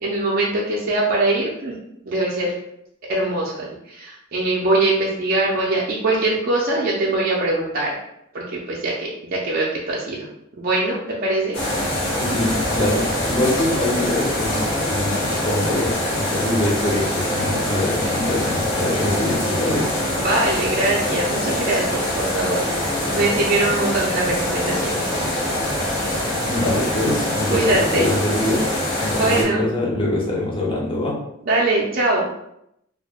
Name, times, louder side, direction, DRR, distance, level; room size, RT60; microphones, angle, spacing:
voice 1, 0.0-1.7 2.0-2.5 3.1-8.0 8.3-10.3 10.6-11.6 20.2-25.1 27.5-28.1 29.1-29.6 31.5-32.3, right 2 dB, 50° right, -5 dB, 0.5 m, -22 dB
sound 1, 11.5-29.4, left 1 dB, 65° left, 0.8 m, -24 dB
voice 2, 12.2-19.9 26.5-28.7 29.0-31.2, left 1 dB, 25° left, -3 dB, 0.7 m, -24 dB
2.3 x 2.1 x 3.4 m, 0.78 s
head